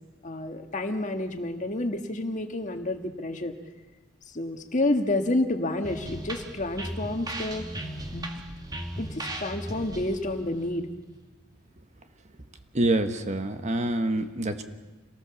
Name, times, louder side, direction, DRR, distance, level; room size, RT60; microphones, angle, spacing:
voice 1, 0.2-3.5 4.3-7.6 8.1-8.3 9.0-10.9, left 2 dB, 40° left, 6 dB, 1.6 m, -29 dB
sound 1, 5.8-11.5, right 1 dB, 20° right, 2.1 m, -37 dB
voice 2, 12.7-14.6, right 1 dB, 35° right, 7 dB, 1.3 m, -26 dB
26.5 x 19.0 x 7.1 m, 1.2 s
head